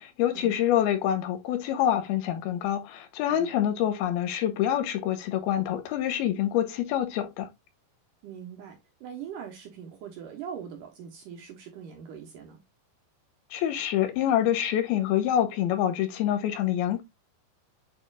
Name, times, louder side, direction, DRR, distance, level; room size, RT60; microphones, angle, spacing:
voice 1, 0.0-7.5 13.5-17.0, left 11 dB, 75° left, 2.7 m, -26 dB
voice 2, 8.2-12.6, right 8 dB, 70° right, 2.3 m, -42 dB
8.6 x 4.9 x 2.4 m
omnidirectional pair, 4.9 m